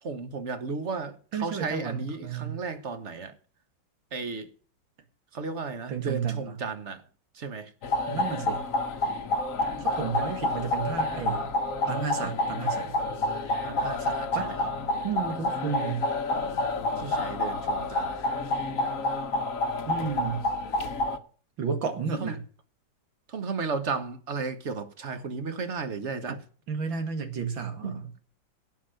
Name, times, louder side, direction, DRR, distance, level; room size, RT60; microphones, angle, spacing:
voice 1, 0.0-3.3 4.1-4.5 5.3-7.0 7.3-7.7 13.6-14.7 17.0-18.1 22.2-22.4 23.3-26.4 27.8-28.2, right 4 dB, 40° right, 1.5 m, -34 dB
voice 2, 1.3-2.6 5.9-6.6 8.1-8.6 9.8-11.5 11.9-12.9 14.3-14.5 15.0-16.1 19.9-20.4 21.6-22.4 26.7-28.1, right 6 dB, 85° right, 2.8 m, -32 dB
sound 1, 7.8-21.2, left 2 dB, 50° left, 1.2 m, -29 dB
17.0 x 6.0 x 6.6 m
omnidirectional pair, 2.1 m